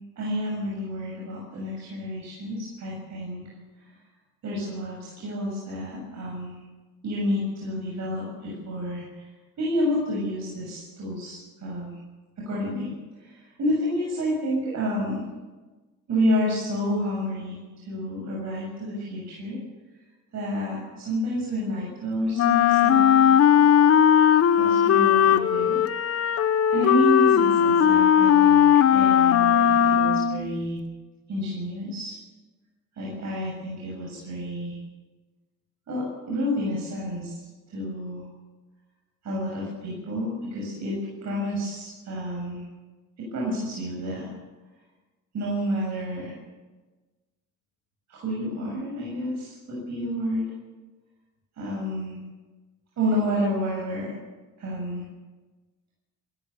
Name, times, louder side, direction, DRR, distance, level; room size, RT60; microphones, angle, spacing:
voice 1, 0.2-3.4 3.8-3.9 4.4-6.6 7.0-9.3 9.6-12.0 12.4-12.9 13.2-15.3 16.1-19.6 20.3-23.3 24.6-25.8 26.7-30.8 31.3-32.2 32.9-34.8 35.9-37.3 37.7-38.2 39.2-42.6 43.2-44.3 45.3-46.3 48.1-50.5 51.6-52.2 53.0-54.1 54.6-55.0, equal, 65° right, -4 dB, 7.2 m, -29 dB
Wind instrument woodwind instrument, 22.3-30.5, left 9 dB, 50° left, 1.0 m, -18 dB
26.5 x 14.0 x 7.1 m, 1.3 s
cardioid pair, 90°, 30 cm